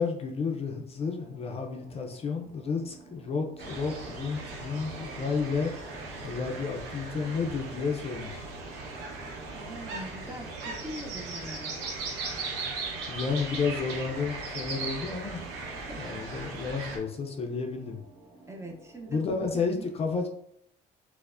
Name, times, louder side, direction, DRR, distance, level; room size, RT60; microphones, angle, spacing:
voice 1, 0.0-5.7 6.2-8.5 13.1-15.4 16.0-18.0 19.1-20.3, left 5 dB, 35° left, 2 dB, 0.4 m, -31 dB
sound 1, 1.0-19.4, right 2 dB, 40° right, 1.0 m, -55 dB
sound 2, 3.6-17.0, right 3 dB, 85° right, 0.7 m, -38 dB
voice 2, 9.5-11.7 15.7-16.2 18.5-19.9, right 1 dB, 15° right, 1 dB, 0.5 m, -42 dB
4.4 x 2.0 x 2.4 m, 0.72 s
cardioid pair, 110°, 17 cm